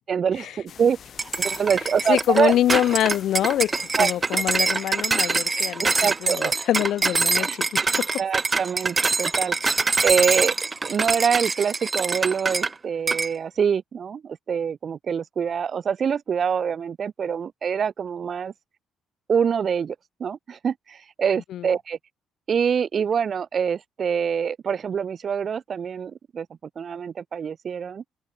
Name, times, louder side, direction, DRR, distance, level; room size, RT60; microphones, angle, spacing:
voice 1, 0.1-1.0 1.4-2.5 4.0-4.1 6.0-6.5 7.4-7.9 8.2-9.5 10.0-10.5 10.8-18.5 19.3-19.9 20.2-22.0 22.5-26.5 26.8-28.0, right 7 dB, 30° right, 1.2 m, -25 dB
sound 1, 0.7-5.3, left 9 dB, 40° left, 7.4 m, -46 dB
sound 2, 1.2-12.7 13.1-13.3, right 4 dB, 15° right, 0.6 m, -24 dB
voice 2, 2.1-8.1 21.5-21.7, left 12 dB, 55° left, 3.0 m, -25 dB
open air
cardioid pair, 180°, 0 cm